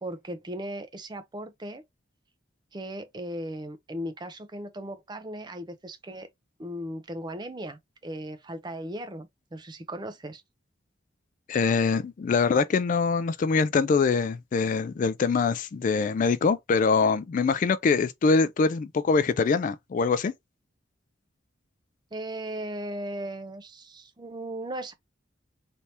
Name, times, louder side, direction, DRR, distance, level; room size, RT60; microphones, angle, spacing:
voice 1, 0.0-1.8 2.7-6.3 6.6-10.4 22.1-24.9, right 1 dB, 25° right, 0.5 m, -37 dB
voice 2, 11.5-20.3, left 4 dB, 45° left, 0.3 m, -24 dB
3.3 x 2.8 x 2.8 m
head